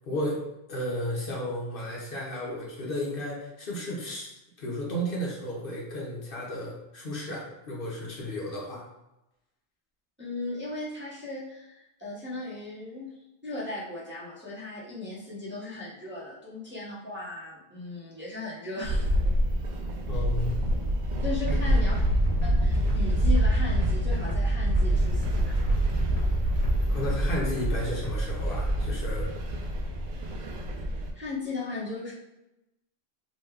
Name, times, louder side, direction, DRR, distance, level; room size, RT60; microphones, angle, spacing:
voice 1, 0.1-0.4 0.7-4.3 4.6-8.9 20.1-20.6 26.9-29.3, equal, 60° left, -3 dB, 1.0 m, -33 dB
voice 2, 10.2-19.1 21.2-21.9 22.4-25.6 31.1-32.1, left 2 dB, 15° right, -8 dB, 0.7 m, -37 dB
sound 1, 18.8-31.1, equal, 60° right, 0.6 m, -27 dB
sound 2, 21.5-29.0, right 1 dB, 45° left, 0.6 m, -30 dB
3.1 x 2.2 x 3.5 m, 0.91 s
omnidirectional pair, 1.0 m